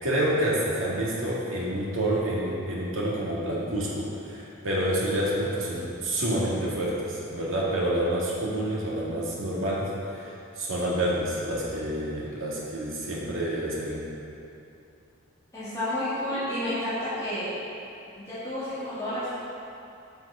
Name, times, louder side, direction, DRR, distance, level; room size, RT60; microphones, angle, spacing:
voice 1, 0.0-9.8 10.1-14.0, right 1 dB, 75° right, -6 dB, 2.1 m, -28 dB
voice 2, 15.5-17.5 18.2-19.3, left 1 dB, 15° left, -14 dB, 2.0 m, -30 dB
7.5 x 6.1 x 5.6 m, 2.7 s
head